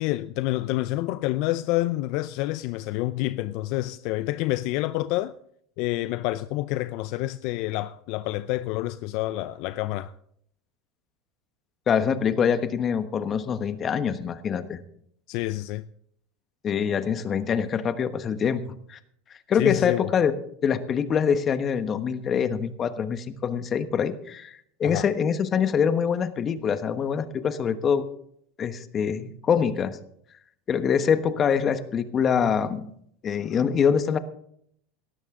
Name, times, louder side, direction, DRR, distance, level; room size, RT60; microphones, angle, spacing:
voice 1, 0.0-5.3 5.8-10.1 15.3-15.8 19.5-20.1 24.8-25.0, left 17 dB, 60° left, 0.5 m, -28 dB
voice 2, 11.9-14.8 16.6-18.6 18.9-19.0 19.5-20.3 20.6-28.0 28.6-30.0 30.7-32.9 33.2-34.2, left 7 dB, 30° left, 1.2 m, -24 dB
18.0 x 13.0 x 3.7 m
supercardioid pair, 120°, 0 cm